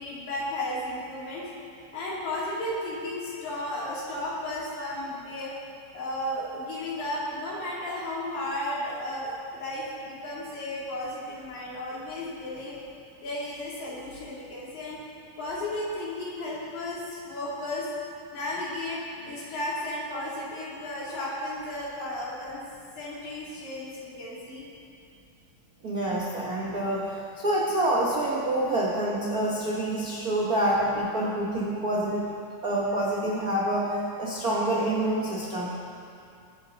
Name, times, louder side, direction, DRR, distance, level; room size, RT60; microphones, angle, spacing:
voice 1, 0.0-1.5 1.9-5.5 5.9-12.8 13.2-15.0 15.4-17.9 18.3-22.6 23.0-24.6, left 1 dB, 90° left, -7 dB, 4.7 m, -34 dB
voice 2, 25.8-32.3 32.6-35.7, right 1 dB, 80° right, -4 dB, 0.8 m, -27 dB
22.0 x 9.0 x 4.0 m, 2.6 s
omnidirectional pair, 3.9 m